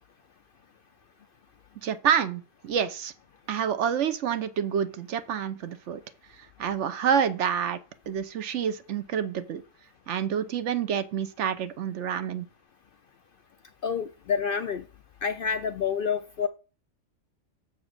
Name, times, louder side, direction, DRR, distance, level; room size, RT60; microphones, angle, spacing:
voice 1, 1.8-3.1 3.5-6.0 6.6-7.8 8.1-9.6 10.1-12.5, right 8 dB, 65° right, 1.0 m, -28 dB
voice 2, 13.8-14.8 15.2-16.5, left 6 dB, 60° left, 0.6 m, -28 dB
7.1 x 4.0 x 6.5 m
omnidirectional pair, 1.3 m